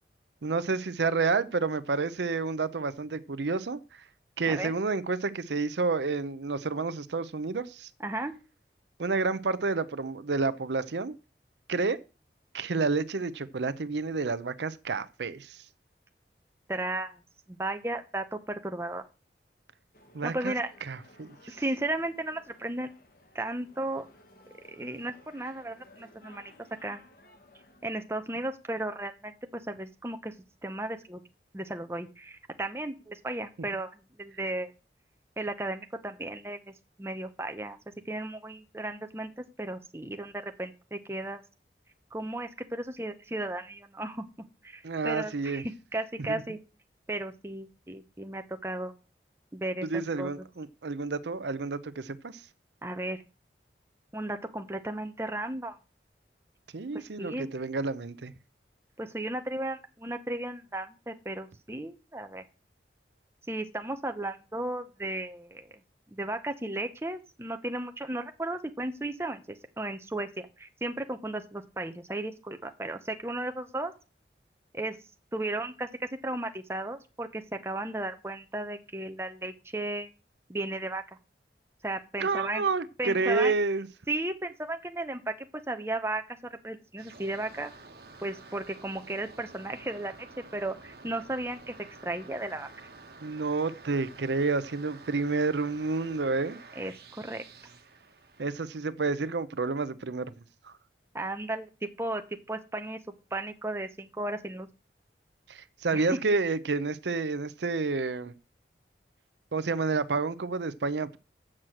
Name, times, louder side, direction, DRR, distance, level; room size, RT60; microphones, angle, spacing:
voice 1, 0.4-4.0 4.4-7.9 9.0-11.2 11.7-12.0 12.5-15.6 20.1-20.6 20.9-21.6 44.8-45.6 46.3-46.4 49.8-52.4 56.7-58.3 82.2-83.9 93.2-96.6 98.4-100.3 100.6-100.7 105.5-108.3 109.5-111.2, right 4 dB, 80° right, 0.6 m, -29 dB
voice 2, 8.0-8.3 16.7-17.2 17.5-19.0 20.2-20.7 21.5-22.9 23.3-24.1 24.7-26.5 26.8-27.0 27.8-30.3 30.6-31.2 31.5-34.7 35.4-36.7 37.0-37.8 38.0-41.4 42.1-44.3 44.6-45.6 45.9-46.6 47.1-48.9 49.5-49.9 50.2-50.3 52.8-53.2 54.1-55.8 56.9-57.5 59.0-62.4 63.5-65.7 66.1-73.9 74.7-75.0 75.3-80.1 80.5-81.0 81.8-82.6 83.0-83.5 84.1-87.7 88.2-92.7 96.8-97.4 101.1-102.2 102.5-103.0 103.3-104.7 105.9-106.2, right 2 dB, 15° right, 0.8 m, -35 dB
sound 1, 19.9-28.0, left 1 dB, 55° left, 1.7 m, -57 dB
sound 2, 87.0-98.8, right 3 dB, 60° right, 1.4 m, -50 dB
7.4 x 6.3 x 7.7 m
head